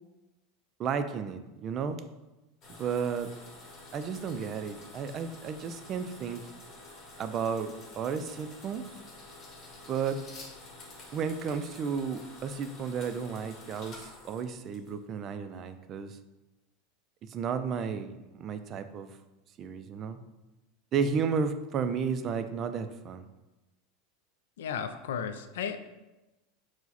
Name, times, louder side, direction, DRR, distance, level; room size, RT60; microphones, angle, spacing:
voice 1, 0.8-2.0 2.8-3.3 3.9-6.4 7.2-8.8 9.9-10.2 11.1-16.2 17.3-19.1 19.6-20.2 20.9-23.3, right 6 dB, 40° right, 10 dB, 0.3 m, -33 dB
sound 1, 2.6-15.2, left 2 dB, 35° left, 1.3 m, -49 dB
voice 2, 24.6-25.8, left 7 dB, 80° left, 10 dB, 0.3 m, -34 dB
4.5 x 2.1 x 4.1 m, 1.0 s
hypercardioid pair, 95°, 0 cm